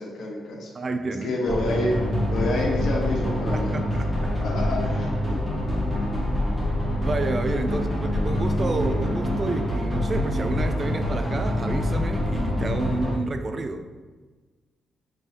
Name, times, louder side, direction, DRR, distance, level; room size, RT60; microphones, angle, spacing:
voice 1, 0.0-0.7 1.2-1.9 2.3-3.7 4.1-5.4 7.7-7.8, left 2 dB, 70° left, -2 dB, 1.1 m, -28 dB
voice 2, 0.7-1.3 3.5-3.9 4.2-4.4 7.0-13.9, right 3 dB, 35° right, 8 dB, 0.3 m, -30 dB
sound 1, 1.5-13.2, left 1 dB, 10° right, 1.0 m, -25 dB
5.3 x 3.1 x 2.9 m, 1.3 s
cardioid pair, 105°, 0 cm